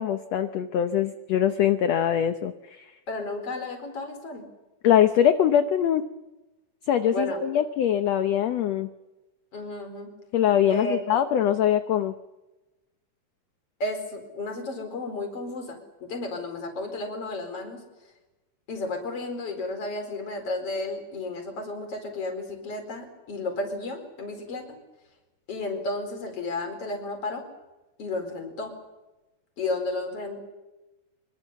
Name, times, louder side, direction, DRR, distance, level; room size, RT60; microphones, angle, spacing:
voice 1, 0.0-2.9 4.8-6.0 6.9-8.9 10.3-12.1, left 10 dB, 70° left, 9 dB, 1.7 m, -23 dB
voice 2, 3.1-4.5 7.1-7.4 9.5-10.1 10.7-11.0 13.8-18.1 18.7-24.8 25.5-27.4 28.0-28.7 29.6-30.4, left 2 dB, 40° left, 4 dB, 5.4 m, -33 dB
24.5 x 24.5 x 7.3 m, 1.1 s
omnidirectional pair, 4.0 m